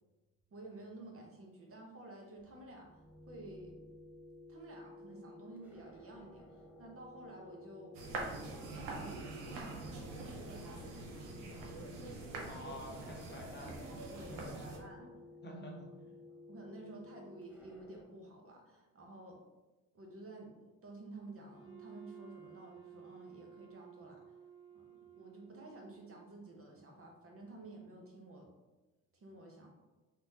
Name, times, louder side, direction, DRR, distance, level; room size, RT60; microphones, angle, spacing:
voice 1, 0.5-3.8 4.5-8.0 8.3-11.7 12.6-12.7 14.1-15.1 16.5-19.4 19.9-24.2 24.7-28.5 29.1-29.7, right 2 dB, 35° right, 0 dB, 0.8 m, -52 dB
sound 1, 2.4-18.0, left 1 dB, 5° right, 0.6 m, -56 dB
sound 2, 7.9-14.8, right 2 dB, 85° right, 0.6 m, -44 dB
voice 2, 12.4-14.0 14.3-14.6 15.0-15.1 15.4-15.9, equal, 30° left, -1 dB, 0.8 m, -48 dB
Wind instrument woodwind instrument, 21.5-26.2, right 8 dB, 75° left, 0.7 m, -55 dB
3.3 x 2.1 x 2.7 m, 1.1 s
hypercardioid pair, 55°, 37 cm